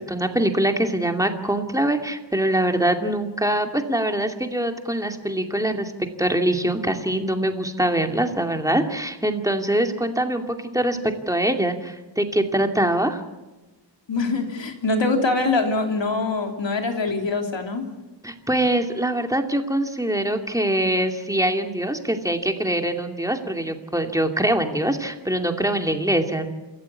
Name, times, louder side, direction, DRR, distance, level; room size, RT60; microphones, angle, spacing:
voice 1, 0.1-5.9 6.2-13.2 18.2-26.5, right 1 dB, 5° right, 4 dB, 2.5 m, -23 dB
voice 2, 14.1-17.8, left 3 dB, 70° left, 3 dB, 3.4 m, -23 dB
28.5 x 14.0 x 8.4 m, 1.1 s
wide cardioid pair, 80°, 46 cm